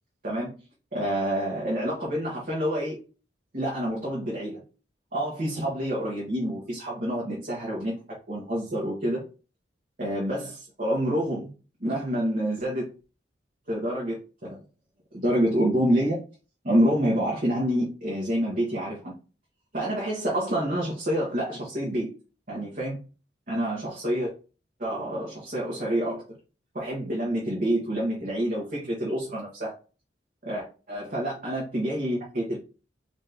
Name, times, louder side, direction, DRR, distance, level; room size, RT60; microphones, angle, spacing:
voice 1, 0.2-0.6 0.9-3.0 3.5-4.6 5.1-9.2 10.0-11.5 11.8-12.9 13.7-14.6 15.1-16.2 16.6-19.1 19.7-22.1 22.5-23.0 23.5-24.3 24.8-26.2 26.7-29.7 30.4-32.6, equal, 45° right, -4 dB, 1.2 m, -27 dB
4.1 x 2.6 x 3.3 m, 0.35 s
head